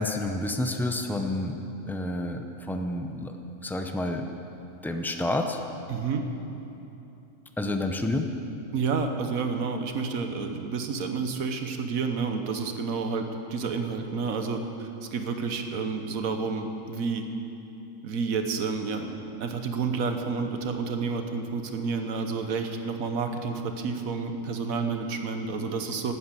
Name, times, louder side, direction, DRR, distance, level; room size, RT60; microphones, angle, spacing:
voice 1, 0.0-1.6 1.9-3.3 3.6-4.3 4.8-5.6 7.6-8.3, left 1 dB, 5° left, 5 dB, 0.3 m, -29 dB
voice 2, 5.9-6.2 8.7-17.3 18.0-26.1, right 5 dB, 90° right, 6 dB, 1.4 m, -30 dB
12.0 x 9.4 x 8.3 m, 2.9 s
omnidirectional pair, 1.4 m